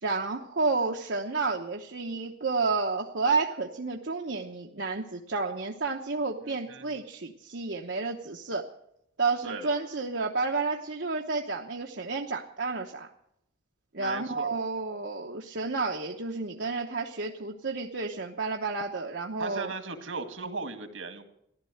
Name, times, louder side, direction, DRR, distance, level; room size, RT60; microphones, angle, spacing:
voice 1, 0.0-8.6 9.2-13.1 13.9-19.7, right 4 dB, 65° right, 1 dB, 1.0 m, -31 dB
voice 2, 6.4-6.9 9.4-9.7 14.0-14.5 19.4-21.2, right 3 dB, 85° right, 7 dB, 1.9 m, -37 dB
15.0 x 11.5 x 7.9 m, 0.75 s
head